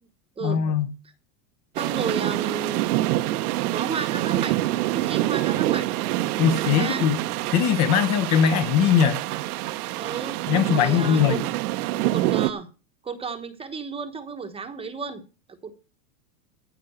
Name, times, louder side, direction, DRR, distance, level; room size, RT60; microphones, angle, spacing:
voice 1, 0.4-0.9 6.4-7.2 7.5-9.2 10.5-11.4, left 8 dB, 35° left, 0.9 m, -20 dB
voice 2, 1.8-2.9 3.7-4.5 4.9-5.9 6.5-7.1 10.0-11.4 12.1-12.7 13.0-15.2 15.6-15.7, right 5 dB, 10° right, 1.1 m, -32 dB
sound 1, 1.8-12.5, right 16 dB, 70° right, 1.0 m, -26 dB
15.0 x 5.3 x 7.8 m
supercardioid pair, 155°, 46 cm